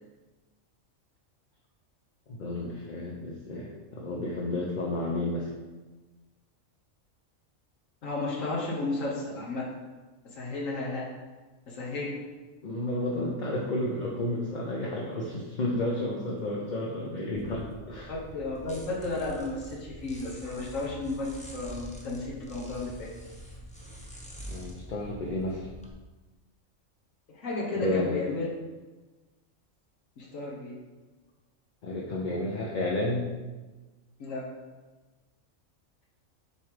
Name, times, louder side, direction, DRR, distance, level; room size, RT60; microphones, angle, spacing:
voice 1, 2.3-5.5 12.6-18.1 24.5-25.7 27.7-28.2 31.8-33.3, left 1 dB, 45° left, -3 dB, 0.8 m, -31 dB
voice 2, 8.0-9.6 10.2-11.1 11.7-12.2 17.6-17.7 18.1-23.1 27.3-28.5 30.2-30.7 34.2-34.4, left 2 dB, 75° left, -3 dB, 1.4 m, -33 dB
sound 1, 17.3-25.9, equal, 5° left, 0.8 m, -45 dB
7.0 x 3.5 x 4.9 m, 1.2 s
omnidirectional pair, 1.4 m